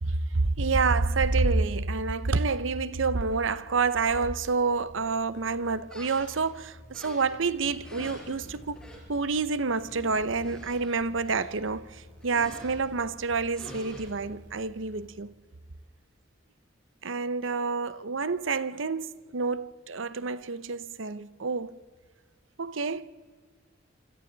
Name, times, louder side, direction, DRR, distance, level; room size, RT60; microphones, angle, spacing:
voice 1, 0.0-15.3 17.0-21.8 22.6-23.0, right 4 dB, 75° right, 0.8 m, -28 dB
sound 1, 1.7-2.7 7.5-13.4, left 1 dB, 60° left, 2.6 m, -51 dB
sound 2, 4.6-15.1, equal, 60° right, 6.2 m, -52 dB
sound 3, 5.9-6.5 6.9-7.5 7.8-9.0 9.3-9.5 9.8-9.9 10.3-11.8 12.2-12.8 13.3-14.0, equal, 5° left, 5.8 m, -47 dB
27.5 x 25.5 x 4.1 m
head